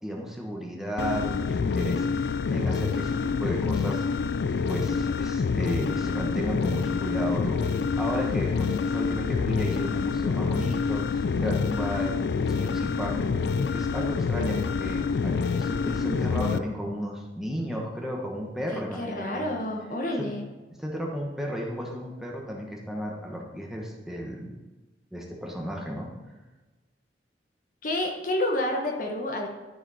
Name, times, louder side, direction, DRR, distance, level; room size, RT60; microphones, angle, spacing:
voice 1, 0.0-4.0 4.7-13.3 13.7-19.5 20.2-20.3 20.8-24.5 25.1-26.1, equal, 5° right, -1 dB, 1.2 m, -34 dB
sound 1, 1.0-16.6, left 5 dB, 65° left, 0.3 m, -27 dB
voice 2, 18.7-20.4 27.8-29.5, left 1 dB, 50° left, 1 dB, 1.1 m, -29 dB
12.0 x 5.0 x 4.2 m, 1.2 s
head